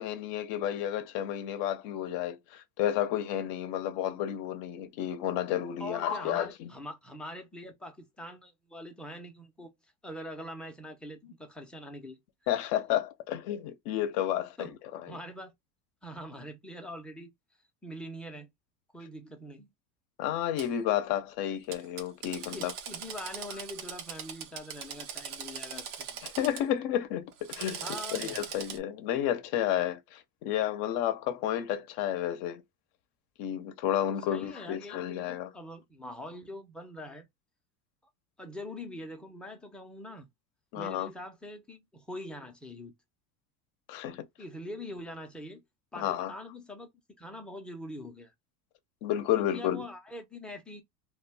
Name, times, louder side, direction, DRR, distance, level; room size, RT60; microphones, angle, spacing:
voice 1, 0.0-6.7 12.5-15.2 20.2-22.7 26.2-32.6 33.4-35.5 40.7-41.1 43.9-44.3 46.0-46.3 49.0-49.8, left 11 dB, 55° left, 0.7 m, -31 dB
voice 2, 5.8-9.7 10.0-12.2 14.6-14.7 15.1-15.5 16.0-17.3 17.8-18.5 18.9-19.7 22.5-26.2 27.8-28.4 34.3-37.3 38.4-40.3 40.7-42.9 44.4-45.6 45.9-46.9 47.2-48.3 49.4-50.8, left 1 dB, ahead, 0.5 m, -43 dB
Drill, 20.6-20.7 21.7-26.6 27.3-28.8, right 8 dB, 90° right, 0.8 m, -41 dB
2.3 x 2.2 x 3.3 m
supercardioid pair, 110°, 44 cm